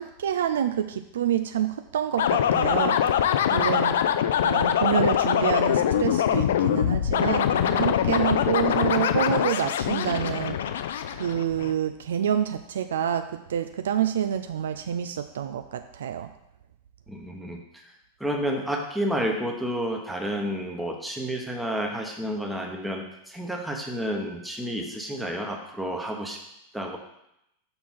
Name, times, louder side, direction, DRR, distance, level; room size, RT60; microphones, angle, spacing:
voice 1, 0.0-3.0 3.5-4.0 4.4-10.6 11.1-16.3, right 9 dB, 60° right, 9 dB, 0.3 m, -27 dB
sound 1, 2.2-11.7, left 9 dB, 60° left, 0.4 m, -23 dB
voice 2, 17.1-17.6 18.2-26.4 26.7-27.0, equal, 5° right, 2 dB, 1.0 m, -30 dB
5.9 x 4.2 x 5.5 m, 0.82 s
figure-of-eight pair, 90°, 0 cm